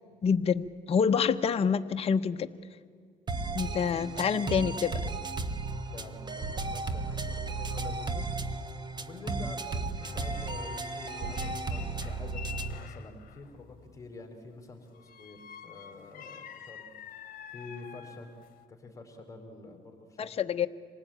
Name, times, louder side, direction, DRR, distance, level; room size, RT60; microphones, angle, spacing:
voice 1, 0.2-2.5 3.5-5.0 20.2-20.7, left 6 dB, 35° left, 7 dB, 0.9 m, -27 dB
sound 1, 3.3-12.9, right 3 dB, 25° right, 1.3 m, -34 dB
voice 2, 5.9-8.3 9.0-18.3 18.7-20.3, left 3 dB, 20° left, 3 dB, 4.2 m, -47 dB
sound 2, 10.0-13.4 14.9-18.7, left 9 dB, 55° left, 1.4 m, -47 dB
26.5 x 19.0 x 8.9 m, 2.2 s
cardioid pair, 110°, 17 cm